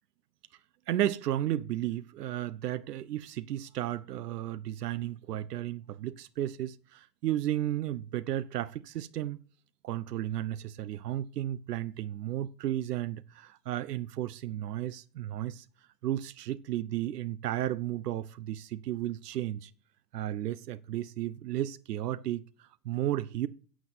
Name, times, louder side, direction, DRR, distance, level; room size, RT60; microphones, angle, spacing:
voice 1, 0.9-9.4 9.8-15.6 16.0-19.7 20.1-23.5, right 13 dB, 85° right, 1.1 m, -33 dB
12.5 x 7.4 x 8.3 m
hypercardioid pair, 135°, 47 cm